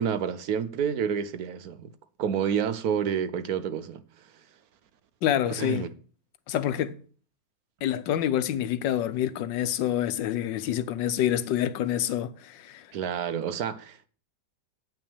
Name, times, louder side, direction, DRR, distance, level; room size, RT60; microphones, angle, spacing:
voice 1, 0.0-1.9 2.2-4.0 5.6-5.9 12.9-14.1, right 8 dB, 65° right, 1.1 m, -29 dB
voice 2, 5.2-5.9 6.5-7.0 7.8-12.9, left 11 dB, 85° left, 1.4 m, -27 dB
8.8 x 5.8 x 7.0 m
omnidirectional pair, 1.9 m